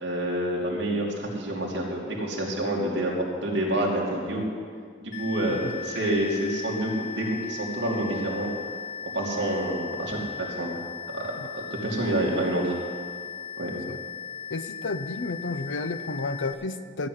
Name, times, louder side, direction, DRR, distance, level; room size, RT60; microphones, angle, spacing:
voice 1, 0.0-4.4 5.0-8.5 9.1-10.8 11.1-11.2 11.5-12.8 13.6-13.7, right 1 dB, 65° right, -2 dB, 2.6 m, -28 dB
sound 1, 5.1-16.5, left 7 dB, 45° left, 0.9 m, -38 dB
voice 2, 14.5-17.1, left 3 dB, 75° left, 11 dB, 0.7 m, -31 dB
14.0 x 6.2 x 9.3 m, 2.1 s
head